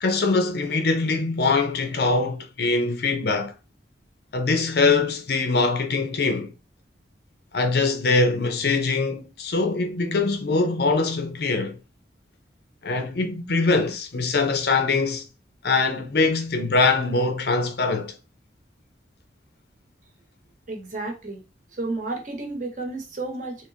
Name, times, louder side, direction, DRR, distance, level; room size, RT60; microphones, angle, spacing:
voice 1, 0.0-3.5 4.3-6.5 7.5-11.8 12.8-15.2 15.6-18.1, left 3 dB, 60° left, 0.6 m, -23 dB
voice 2, 20.7-21.4 21.7-23.7, right 2 dB, 45° right, 1.0 m, -32 dB
3.5 x 2.8 x 2.8 m
head